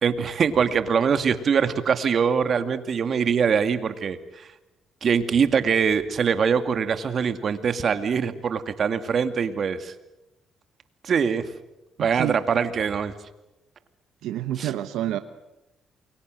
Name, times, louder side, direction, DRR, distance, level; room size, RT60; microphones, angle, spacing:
voice 1, 0.0-4.5 5.0-9.9 11.0-11.4 12.0-13.1 14.6-14.7, right 6 dB, 55° right, 10 dB, 2.3 m, -23 dB
voice 2, 14.2-15.2, right 12 dB, 90° right, 10 dB, 1.0 m, -28 dB
29.0 x 23.0 x 7.8 m, 0.93 s
cardioid pair, 90°, 0 cm